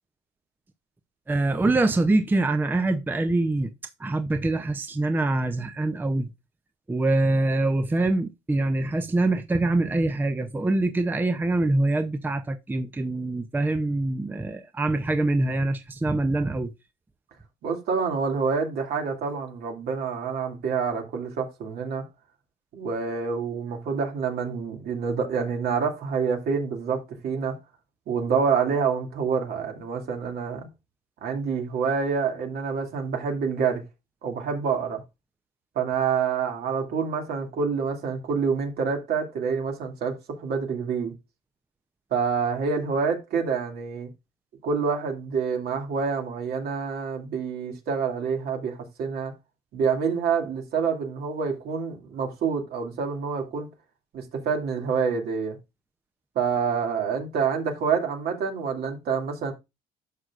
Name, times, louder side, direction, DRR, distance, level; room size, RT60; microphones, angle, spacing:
voice 1, 1.3-3.7 4.0-6.3 6.9-16.7, right 2 dB, 10° right, 0.6 m, -24 dB
voice 2, 17.6-22.1 22.7-27.6 28.1-30.7 31.2-33.9 34.2-35.0 35.8-41.1 42.1-44.1 44.6-49.3 49.7-53.7 54.1-55.6 56.4-59.5, right 5 dB, 70° right, 2.4 m, -27 dB
11.0 x 6.4 x 2.4 m
cardioid pair, 110°, 17 cm